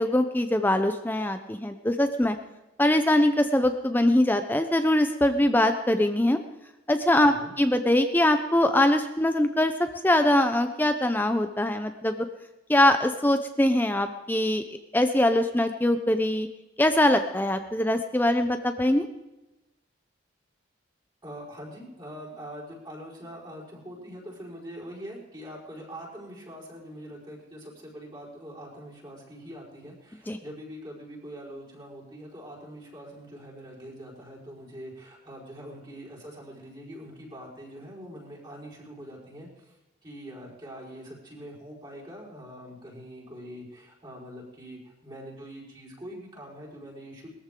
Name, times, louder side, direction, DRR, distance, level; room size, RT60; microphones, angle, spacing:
voice 1, 0.0-2.4 2.8-6.4 6.9-12.2 12.7-14.6 14.9-16.5 16.8-19.1 30.3-30.4, left 1 dB, 10° left, 7 dB, 0.6 m, -23 dB
voice 2, 7.2-7.5 21.2-47.3, equal, 25° right, -5 dB, 4.8 m, -43 dB
21.0 x 14.0 x 3.8 m, 1.0 s
head